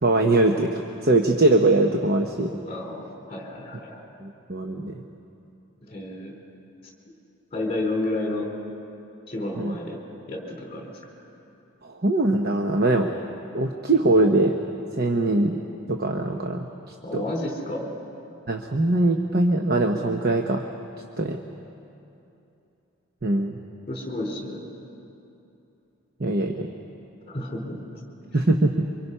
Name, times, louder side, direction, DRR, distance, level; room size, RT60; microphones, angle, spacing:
voice 1, 0.0-2.5 4.2-5.0 9.6-9.8 11.8-13.2 13.5-14.6 14.9-15.6 15.9-17.2 18.5-20.7 21.2-21.4 23.2-23.6 26.2-26.7 28.3-28.9, right 2 dB, 50° right, 3 dB, 1.0 m, -22 dB
voice 2, 2.6-4.0 5.9-6.4 7.5-8.5 9.3-10.0 10.3-11.0 17.0-17.9 23.9-24.7 27.3-28.0, left 2 dB, 30° left, 0 dB, 4.3 m, -31 dB
27.5 x 25.0 x 5.6 m, 2.8 s
head